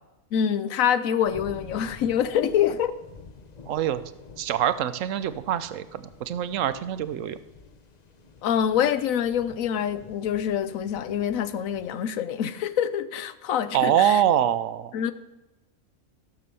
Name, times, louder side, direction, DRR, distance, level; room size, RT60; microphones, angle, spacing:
voice 1, 0.3-2.9 8.4-14.2 14.9-15.1, left 9 dB, 75° left, 13 dB, 1.0 m, -25 dB
sound 1, 1.2-12.0, left 4 dB, 40° left, 0.7 m, -49 dB
voice 2, 3.7-4.0 4.4-7.4 13.7-14.9, right 10 dB, 70° right, 13 dB, 0.9 m, -24 dB
15.0 x 6.0 x 6.9 m, 1.0 s
omnidirectional pair, 1.4 m